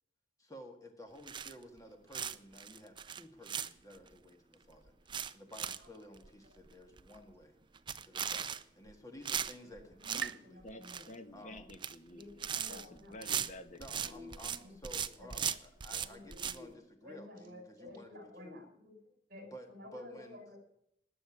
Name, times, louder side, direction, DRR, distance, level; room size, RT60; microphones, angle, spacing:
voice 1, 0.4-7.6 8.0-10.6 11.3-11.7 13.8-18.6 19.4-20.4, equal, 20° left, 4 dB, 1.8 m, -53 dB
sound 1, 1.3-1.8 2.1-4.1 4.5-4.6 4.9-5.9 6.2-6.3 6.7-6.8 7.0-7.3 7.7-8.9 9.2-10.3 10.6-11.1 11.6-11.9 12.2-14.6 14.8-16.6, right 8 dB, 25° right, 0.5 m, -38 dB
sound 2, 7.8-11.6, right 8 dB, 75° right, 0.6 m, -50 dB
voice 2, 10.0-11.1 12.1-13.1 14.0-14.3 14.6-14.7 15.2-15.3 16.0-16.7 17.0-18.9 19.3-20.6, left 2 dB, 50° right, 3 dB, 5.7 m, -52 dB
voice 3, 10.6-14.2, left 1 dB, 40° left, 8 dB, 1.3 m, -51 dB
19.0 x 7.0 x 9.8 m, 0.74 s
head